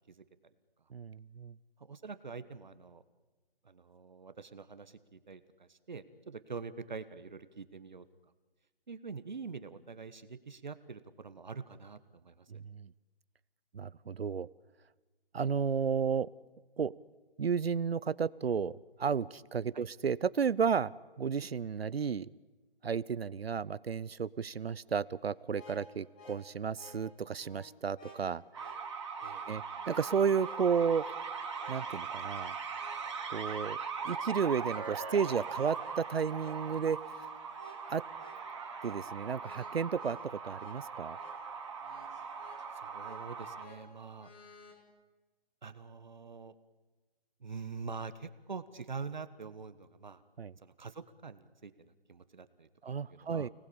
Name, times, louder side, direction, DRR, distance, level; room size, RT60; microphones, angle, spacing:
voice 1, 0.9-1.5 12.5-12.9 13.7-14.5 15.3-16.3 16.8-16.9 17.4-20.9 21.2-22.3 22.8-28.7 29.5-31.0 31.7-32.5 33.3-33.8 34.0-37.0 37.9-38.0 38.8-40.2 40.4-41.2 50.4-50.5 52.8-53.5, right 6 dB, 75° right, 19 dB, 0.8 m, -32 dB
voice 2, 1.8-3.0 3.6-8.0 8.9-12.5 19.7-19.9 29.2-29.5 42.7-44.3 45.6-46.5 47.4-50.2 50.6-53.5, right 5 dB, 45° right, 12 dB, 1.3 m, -45 dB
sound 1, 25.4-44.8, left 1 dB, 10° left, 1.1 m, -56 dB
sound 2, 28.5-43.6, right 5 dB, 30° right, 2.4 m, -40 dB
29.5 x 19.5 x 8.6 m, 1.2 s
hypercardioid pair, 175°, 31 cm